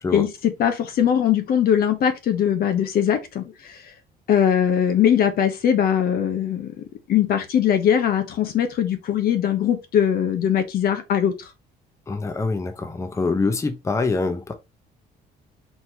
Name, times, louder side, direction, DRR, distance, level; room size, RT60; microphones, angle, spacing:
voice 1, 0.1-3.8 4.3-6.7 7.1-11.5, left 9 dB, 65° left, 1.0 m, -21 dB
voice 2, 12.1-14.5, left 3 dB, 15° left, 0.7 m, -25 dB
4.4 x 2.9 x 3.3 m
cardioid pair, 110°, 17 cm